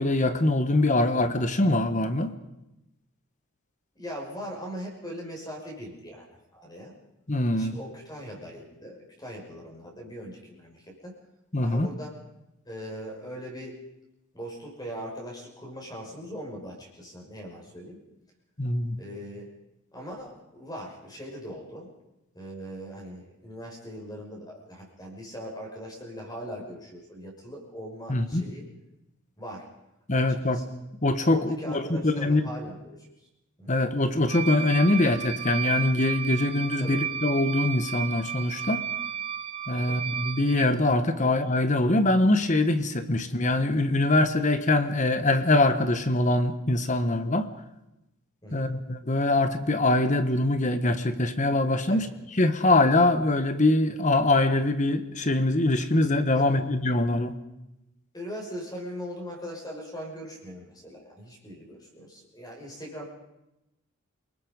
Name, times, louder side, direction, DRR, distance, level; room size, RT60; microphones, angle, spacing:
voice 1, 0.0-2.3 7.3-7.7 11.5-11.9 18.6-19.0 28.1-28.4 30.1-30.6 31.0-32.4 33.7-38.8 39.7-47.5 48.5-52.1 52.4-57.3, left 2 dB, 35° left, 10 dB, 1.3 m, -23 dB
voice 2, 3.9-6.3 6.5-6.9 7.5-11.1 11.6-12.2 12.7-13.8 14.3-18.0 19.0-19.5 19.9-21.9 22.3-28.6 29.4-29.7 30.5-30.6 31.3-33.1 33.6-33.7 36.8-37.0 39.7-40.0 41.2-41.3 48.4-48.7 51.9-52.1 56.3-56.6 58.1-63.1, equal, 20° left, 0 dB, 6.1 m, -40 dB
sound 1, 34.3-40.7, right 9 dB, 25° right, 0.7 m, -33 dB
28.5 x 19.5 x 5.4 m, 0.91 s
head